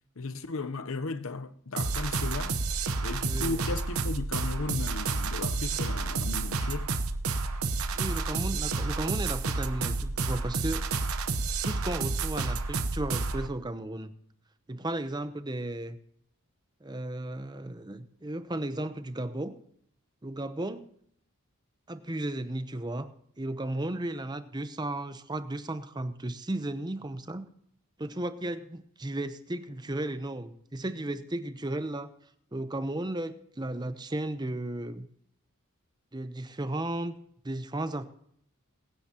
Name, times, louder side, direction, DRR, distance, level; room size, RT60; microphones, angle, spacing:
voice 1, 0.2-2.6 3.0-6.9, left 3 dB, 70° left, 0.8 m, -35 dB
sound 1, 1.8-13.5, right 3 dB, 80° right, 1.0 m, -30 dB
voice 2, 3.2-3.7 7.9-10.8 11.6-14.1 14.7-16.0 16.8-19.6 20.2-20.9 21.9-23.1 23.4-27.5 28.0-32.1 32.5-35.1 36.1-37.1 37.4-38.0, right 1 dB, 20° right, 0.7 m, -34 dB
22.5 x 9.6 x 2.9 m
head